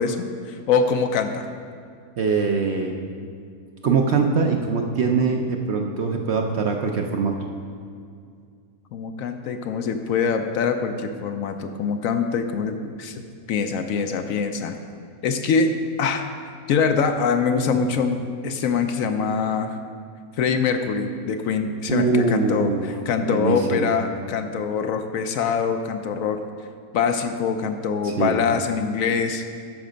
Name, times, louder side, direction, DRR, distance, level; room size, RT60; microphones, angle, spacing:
voice 1, 0.0-1.5 8.9-14.8 15.2-16.3 16.7-18.2 18.4-19.8 20.4-26.4 26.9-29.4, left 5 dB, 70° left, 7 dB, 1.0 m, -24 dB
voice 2, 2.2-2.9 3.8-7.4 21.9-22.9 23.2-23.9 28.2-28.4, right 5 dB, 60° right, 3 dB, 0.8 m, -22 dB
12.5 x 5.3 x 5.1 m, 2.2 s
omnidirectional pair, 1.6 m